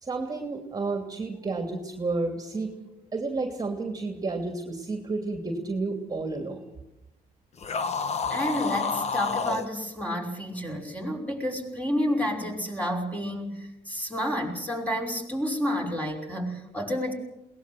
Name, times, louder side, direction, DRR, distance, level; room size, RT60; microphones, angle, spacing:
voice 1, 0.0-2.7 3.1-6.7, right 3 dB, 20° right, 5 dB, 2.9 m, -31 dB
sound 1, 7.6-9.7, left 5 dB, 40° left, 1.5 m, -29 dB
voice 2, 8.3-17.1, equal, 10° left, 1 dB, 5.7 m, -30 dB
22.0 x 19.0 x 7.9 m, 0.93 s
cardioid pair, 110°, 17 cm